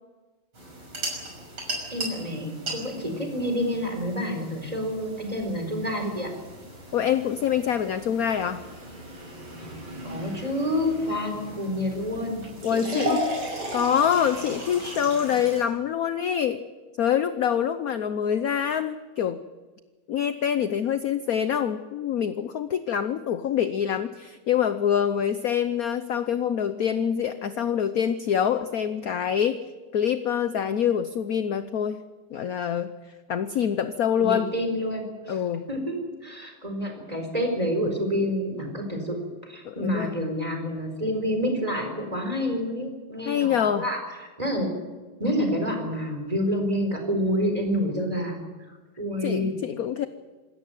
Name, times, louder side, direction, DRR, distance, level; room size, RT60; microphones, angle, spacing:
sound 1, 0.5-15.6, right 1 dB, 80° right, 6.9 m, -37 dB
voice 1, 1.9-6.3 10.0-12.4 12.7-13.2 34.2-35.4 35.7-36.0 36.2-39.2 39.4-44.0 44.4-44.7 45.2-48.4 48.7-49.5, equal, 15° right, 3 dB, 4.3 m, -28 dB
voice 2, 6.9-8.6 12.6-13.2 13.7-16.6 17.0-19.4 20.1-29.6 29.9-32.0 32.3-33.0 33.3-34.5 35.3-35.7 39.6-40.2 43.2-43.9 49.2-50.1, left 8 dB, 60° left, 11 dB, 1.0 m, -25 dB
26.5 x 13.5 x 9.1 m, 1.3 s
omnidirectional pair, 2.3 m